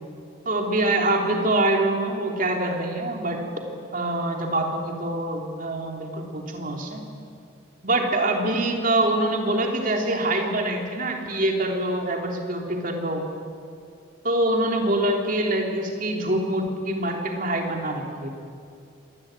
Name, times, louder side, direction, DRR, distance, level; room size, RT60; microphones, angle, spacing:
voice 1, 0.4-3.4 3.9-7.0 7.8-13.3 14.2-18.3, right 1 dB, 40° right, 2 dB, 3.4 m, -25 dB
25.5 x 20.5 x 9.1 m, 2.4 s
head